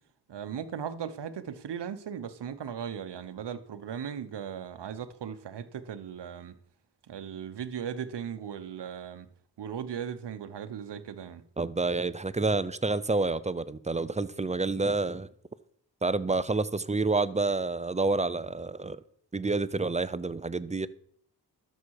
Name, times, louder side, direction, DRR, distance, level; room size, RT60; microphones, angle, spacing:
voice 1, 0.3-6.5 7.1-9.3 9.6-11.4, right 8 dB, 80° right, 1.0 m, -37 dB
voice 2, 11.6-15.3 16.0-19.0 19.3-20.9, right 3 dB, 15° right, 0.5 m, -28 dB
12.5 x 6.8 x 4.8 m
cardioid pair, 65°, 41 cm